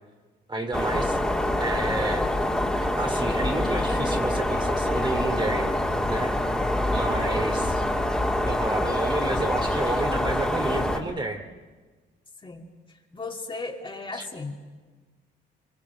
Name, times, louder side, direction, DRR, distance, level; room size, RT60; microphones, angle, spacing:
voice 1, 0.5-2.3 2.8-5.7 6.1-6.3 6.9-7.8 8.4-11.4 14.1-14.2, right 2 dB, 25° right, 4 dB, 2.6 m, -30 dB
sound 1, 0.7-11.0, left 1 dB, 5° left, 3.0 m, -25 dB
voice 2, 13.1-14.5, left 3 dB, 25° left, 1 dB, 3.1 m, -35 dB
25.5 x 24.0 x 8.4 m, 1.3 s
cardioid pair, 100°, 20 cm